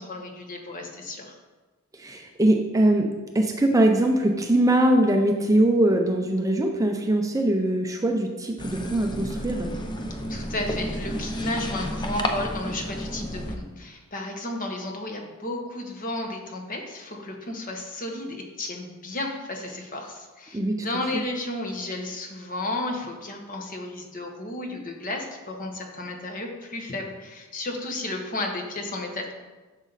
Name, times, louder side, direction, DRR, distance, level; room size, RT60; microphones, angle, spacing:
voice 1, 0.0-1.4 10.3-29.3, left 2 dB, 40° left, 2 dB, 1.3 m, -33 dB
voice 2, 1.9-3.1 3.3-9.7 20.5-20.8, right 1 dB, 15° right, 3 dB, 0.6 m, -22 dB
sound 1, 8.6-13.6, left 1 dB, 20° left, 0.7 m, -31 dB
11.0 x 6.2 x 4.1 m, 1.2 s
head